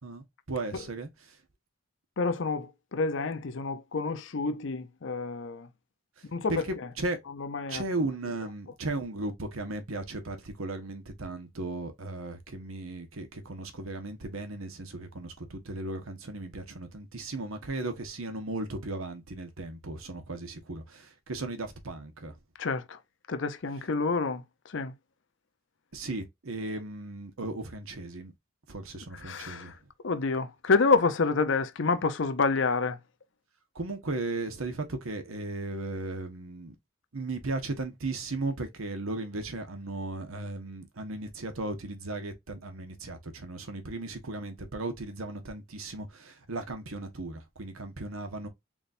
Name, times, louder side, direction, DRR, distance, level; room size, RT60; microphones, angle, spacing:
voice 1, 0.0-1.4 6.2-6.3 6.5-7.2 7.7-22.3 25.9-28.3 28.7-29.7 33.7-36.8 37.1-48.5, right 2 dB, 90° right, 1.1 m, -36 dB
voice 2, 2.2-5.7 6.3-6.6 7.4-7.8 22.6-23.0 23.3-24.9 29.2-29.7 30.0-33.0, left 4 dB, 60° left, 0.6 m, -28 dB
4.0 x 3.5 x 2.5 m
head